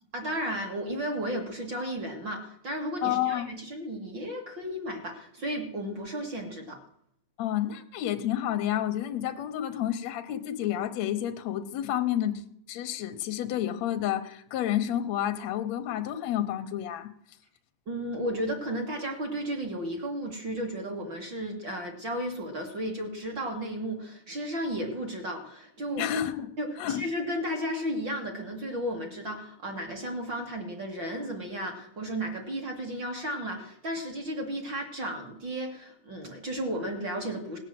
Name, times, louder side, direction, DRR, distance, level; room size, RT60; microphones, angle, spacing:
voice 1, 0.1-6.8 17.9-26.1 26.6-37.6, equal, 35° right, 2 dB, 2.3 m, -34 dB
voice 2, 3.0-3.5 7.4-12.4 12.7-17.1 26.0-26.5 26.8-27.0, left 11 dB, 70° left, 8 dB, 1.6 m, -30 dB
18.0 x 8.9 x 7.7 m, 0.71 s
omnidirectional pair, 4.2 m